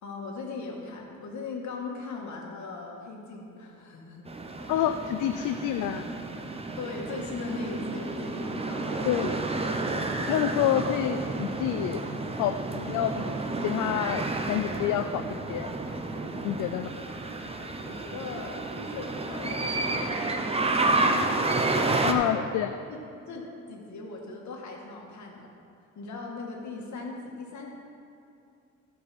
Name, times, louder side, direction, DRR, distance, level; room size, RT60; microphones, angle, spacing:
voice 1, 0.0-4.3 6.8-9.5 17.8-21.2 21.7-22.5 22.9-23.0 23.3-25.5 26.0-27.7, left 3 dB, 65° left, -1 dB, 1.9 m, -39 dB
sound 1, 4.3-22.1, right 2 dB, 20° right, 0.8 m, -30 dB
voice 2, 4.7-6.0 9.1-9.4 10.0-12.0 12.4-14.2 14.5-15.7 16.4-16.9 22.0-22.7, left 11 dB, 85° left, 8 dB, 0.5 m, -28 dB
15.0 x 5.4 x 4.3 m, 2.6 s
cardioid pair, 90°, 30 cm